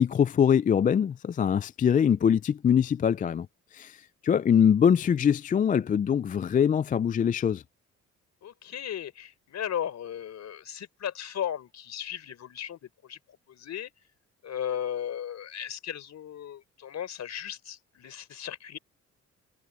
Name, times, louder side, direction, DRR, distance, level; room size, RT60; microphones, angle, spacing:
voice 1, 0.0-3.5 3.7-4.0 4.2-7.6, left 8 dB, 30° left, 0.3 m, -23 dB
voice 2, 8.4-13.2 13.5-13.9 14.4-18.8, left 9 dB, 60° left, 3.9 m, -36 dB
cardioid pair, 90°, 30 cm